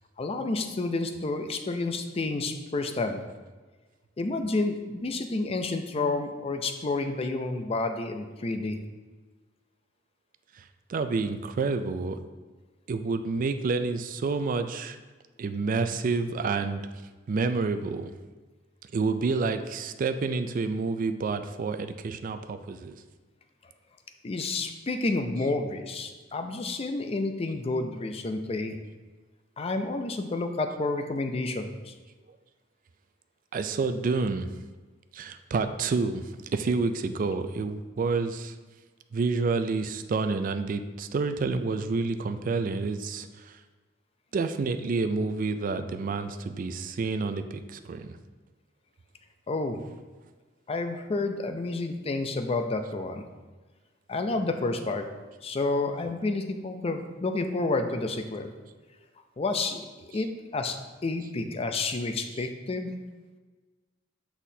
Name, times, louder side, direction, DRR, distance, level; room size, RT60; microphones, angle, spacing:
voice 1, 0.2-3.2 4.2-8.8 24.2-28.8 29.6-31.9 49.5-49.8 50.7-53.2 54.1-55.1 55.4-58.5 59.4-59.8 60.1-63.0, left 3 dB, 30° left, 7 dB, 0.4 m, -30 dB
voice 2, 10.9-12.2 12.9-15.0 15.4-16.8 17.3-18.1 18.9-23.0 25.4-25.5 33.5-34.5 35.1-36.2 36.5-38.5 39.1-43.6 44.3-48.2 62.3-62.4, right 4 dB, 45° right, 9 dB, 0.3 m, -29 dB
6.2 x 5.7 x 2.7 m, 1.3 s
head